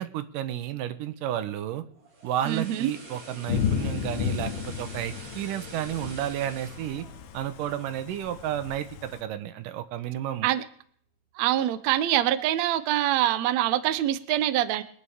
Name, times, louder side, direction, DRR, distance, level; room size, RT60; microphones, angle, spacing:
voice 1, 0.0-1.8 2.2-7.0 7.3-10.5, right 11 dB, 75° right, 11 dB, 2.3 m, -32 dB
sound 1, 1.9-8.1 8.5-8.7, right 2 dB, 50° right, 4.1 m, -46 dB
voice 2, 2.4-2.9 10.4-10.6 11.3-14.8, right 13 dB, 90° right, 13 dB, 1.5 m, -24 dB
Thunder / Rain, 3.5-9.2, left 8 dB, 80° left, 2.8 m, -33 dB
24.0 x 9.8 x 3.5 m, 0.62 s
omnidirectional pair, 4.2 m